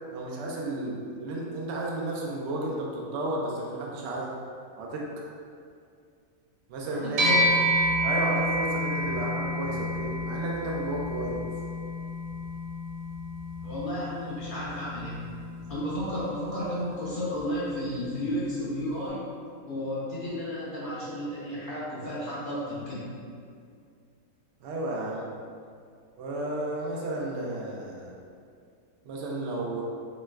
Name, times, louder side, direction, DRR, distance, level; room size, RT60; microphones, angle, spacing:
voice 1, 0.1-4.3 4.8-5.2 6.7-7.4 8.0-11.5 24.6-25.3 26.2-28.1 29.0-29.8, right 2 dB, 65° right, -3 dB, 0.7 m, -32 dB
voice 2, 6.9-7.5 12.3-12.4 13.6-15.3 15.7-19.2 19.7-23.1, equal, 50° left, -9 dB, 0.6 m, -33 dB
sound 1, 7.2-16.8, equal, 80° right, 1.1 m, -29 dB
3.2 x 3.0 x 2.3 m, 2.3 s
omnidirectional pair, 1.5 m